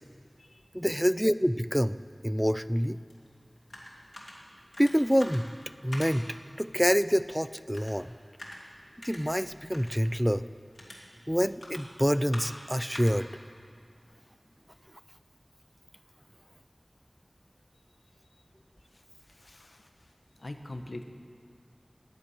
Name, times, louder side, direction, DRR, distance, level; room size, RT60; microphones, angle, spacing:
voice 1, 0.7-3.0 4.8-5.5 5.8-8.1 9.0-10.4 11.3-13.3, equal, ahead, 15 dB, 0.3 m, -27 dB
sound 1, 3.1-14.8, left 1 dB, 55° left, 2.4 m, -48 dB
voice 2, 19.3-19.9 20.4-21.0, left 2 dB, 75° left, 6 dB, 0.9 m, -43 dB
10.5 x 9.8 x 8.5 m, 2.1 s
wide cardioid pair, 50°, 0 cm